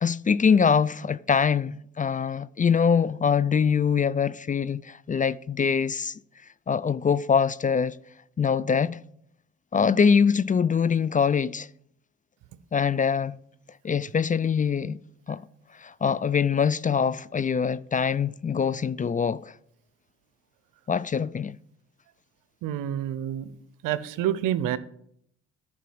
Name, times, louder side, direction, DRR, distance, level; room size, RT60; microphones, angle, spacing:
voice 1, 0.0-6.1 6.7-8.0 8.4-9.0 9.7-11.7 12.7-13.4 13.8-15.0 15.3-15.5 15.8-19.5 20.9-21.6, left 6 dB, 25° left, 0.4 m, -23 dB
voice 2, 22.6-23.5 23.8-24.8, right 11 dB, 90° right, 0.7 m, -28 dB
10.5 x 4.8 x 7.8 m
supercardioid pair, 65°, 32 cm